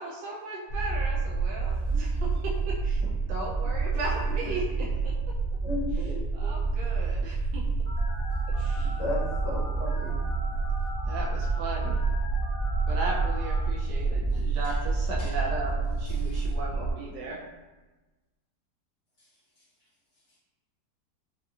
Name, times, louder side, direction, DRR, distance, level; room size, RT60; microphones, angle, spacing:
voice 1, 0.0-5.1 5.9-7.6 8.6-9.0 11.0-12.0 12.9-17.4, right 2 dB, 85° right, -3 dB, 1.2 m, -36 dB
sound 1, 0.7-16.9, right 4 dB, 60° right, 1.2 m, -28 dB
voice 2, 1.7-2.2 14.3-14.9 15.2-15.4 16.0-16.5 19.2-20.4, left 1 dB, 30° left, -7 dB, 1.2 m, -54 dB
voice 3, 5.6-6.5 9.0-10.2, left 3 dB, 75° left, -4 dB, 1.4 m, -35 dB
Telephone, 7.9-13.6, left 1 dB, 15° right, 0.6 m, -42 dB
4.9 x 2.3 x 2.6 m, 1.2 s
omnidirectional pair, 1.8 m